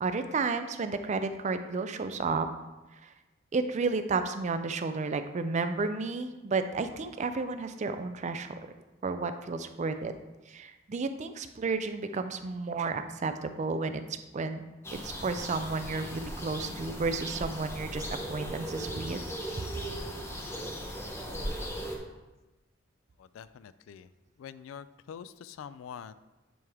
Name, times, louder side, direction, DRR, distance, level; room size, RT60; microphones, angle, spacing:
voice 1, 0.0-2.5 2.9-3.1 3.5-8.5 9.0-10.1 10.5-14.0 14.3-14.6 14.9-19.2, right 4 dB, 35° right, 9 dB, 0.4 m, -32 dB
sound 1, 14.8-22.0, equal, 15° left, 0.8 m, -38 dB
voice 2, 23.2-24.1 24.4-26.1, left 7 dB, 85° left, 16 dB, 0.3 m, -45 dB
9.3 x 3.4 x 3.6 m, 1.1 s
head